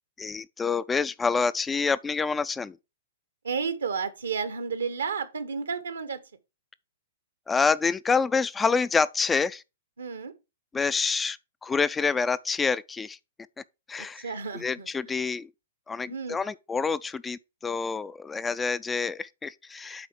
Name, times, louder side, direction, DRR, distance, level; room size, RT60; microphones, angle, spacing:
voice 1, 0.2-2.8 7.5-9.6 10.7-13.2 13.9-14.3 14.5-15.5 15.9-20.1, left 5 dB, 15° left, 0.3 m, -27 dB
voice 2, 3.4-6.2 10.0-10.3 14.2-14.9 16.0-16.4, right 5 dB, 75° right, 1.1 m, -32 dB
8.1 x 4.3 x 4.6 m
hypercardioid pair, 115°, 0 cm